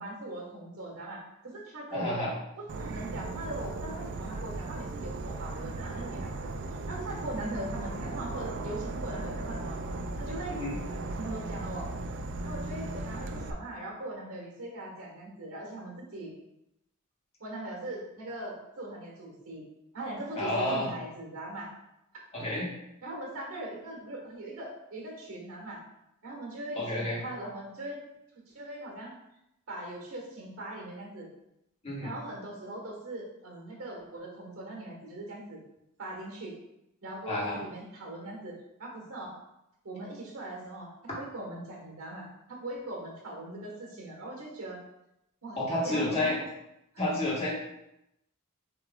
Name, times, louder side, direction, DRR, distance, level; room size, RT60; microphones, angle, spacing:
voice 1, 0.0-2.3 2.6-6.5 6.9-9.8 10.2-10.6 11.1-11.9 12.4-16.3 17.4-19.6 19.9-21.7 23.0-25.8 26.2-28.0 28.5-29.1 29.7-31.3 32.0-35.6 36.0-36.6 37.0-39.4 39.8-40.9 41.2-44.8 45.4-46.4 46.9-47.0, right 1 dB, 70° right, -1 dB, 1.5 m, -40 dB
voice 2, 1.9-2.3 10.5-10.7 20.4-20.9 22.3-22.7 26.7-27.2 31.8-32.1 37.3-37.6 45.6-46.4 47.0-47.5, left 1 dB, 30° left, -6 dB, 1.5 m, -30 dB
Insect / Frog, 2.7-13.5, right 2 dB, 55° right, 0.4 m, -37 dB
6.9 x 3.2 x 2.4 m, 0.85 s
head